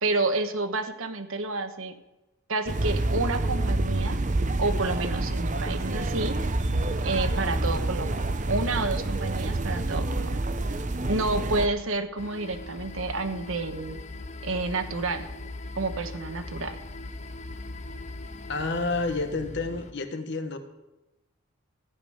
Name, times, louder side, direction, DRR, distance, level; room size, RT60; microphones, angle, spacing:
voice 1, 0.0-2.0 2.5-4.2 4.6-6.4 7.0-10.4 11.1-14.0 14.4-15.3 15.8-16.8, right 3 dB, 70° right, 8 dB, 1.2 m, -29 dB
sound 1, 2.7-11.7, right 2 dB, 35° right, 0.7 m, -27 dB
sound 2, 12.2-19.9, left 2 dB, 30° left, 0.6 m, -40 dB
voice 2, 18.5-20.6, left 3 dB, 55° left, 7 dB, 1.3 m, -29 dB
15.0 x 6.1 x 9.4 m, 0.99 s
head